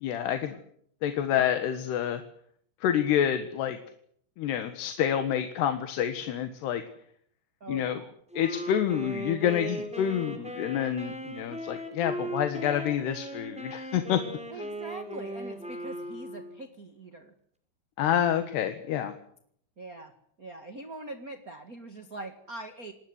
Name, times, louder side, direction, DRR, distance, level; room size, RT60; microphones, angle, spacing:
voice 1, 0.0-0.6 1.0-2.2 2.8-3.8 4.4-6.8 7.7-8.0 8.4-14.2 18.0-19.1, left 10 dB, 75° left, 9 dB, 3.6 m, -28 dB
voice 2, 7.6-8.1 14.5-17.3 19.8-20.1 20.4-22.9, right 2 dB, 40° right, 8 dB, 1.2 m, -42 dB
Wind instrument woodwind instrument, 8.3-16.6, right 1 dB, ahead, 5.0 m, -38 dB
28.0 x 20.0 x 8.2 m, 0.66 s
omnidirectional pair, 5.0 m